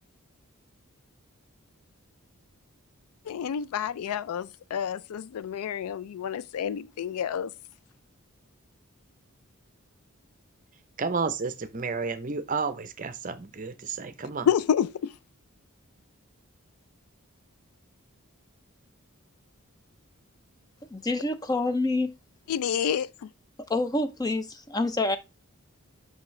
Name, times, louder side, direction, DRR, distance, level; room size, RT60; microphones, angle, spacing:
voice 1, 3.3-7.5 14.5-15.1 22.5-23.3, left 8 dB, 90° left, 0.3 m, -29 dB
voice 2, 11.0-14.5, right 4 dB, 35° right, 0.6 m, -31 dB
voice 3, 20.9-22.1 23.7-25.2, left 2 dB, 15° left, 0.5 m, -27 dB
5.9 x 5.5 x 3.1 m
head